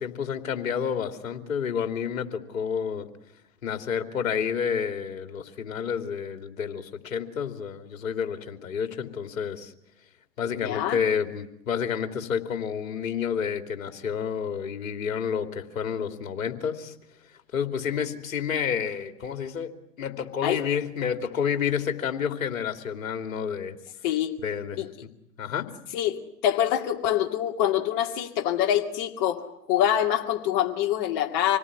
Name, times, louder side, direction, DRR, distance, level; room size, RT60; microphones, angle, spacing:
voice 1, 0.0-3.1 3.6-9.7 10.4-16.9 17.5-23.8 24.4-24.8 25.4-25.7, left 7 dB, 55° left, 8 dB, 3.0 m, -30 dB
voice 2, 10.5-11.0 20.4-20.6 24.0-24.4 24.8-24.9 25.9-31.6, left 11 dB, 30° left, 4 dB, 2.5 m, -25 dB
27.0 x 18.5 x 9.7 m, 0.79 s
hypercardioid pair, 135°, 49 cm